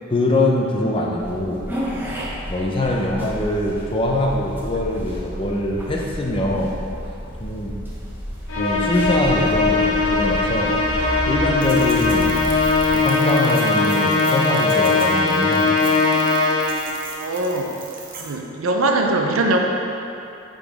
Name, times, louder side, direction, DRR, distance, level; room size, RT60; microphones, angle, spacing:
voice 1, 0.1-1.7 2.5-6.8 7.4-7.8 8.6-12.3 12.9-16.0, left 1 dB, 25° left, -1 dB, 0.6 m, -23 dB
sound 1, 1.2-13.0, equal, 10° right, 0.7 m, -31 dB
Musical instrument, 8.5-17.0, left 3 dB, 70° left, 1.0 m, -20 dB
sound 2, 11.6-18.3, right 4 dB, 45° right, 0.8 m, -38 dB
voice 2, 17.1-17.7 18.2-19.6, right 2 dB, 85° right, 2 dB, 0.6 m, -21 dB
8.6 x 3.9 x 3.5 m, 2.7 s
head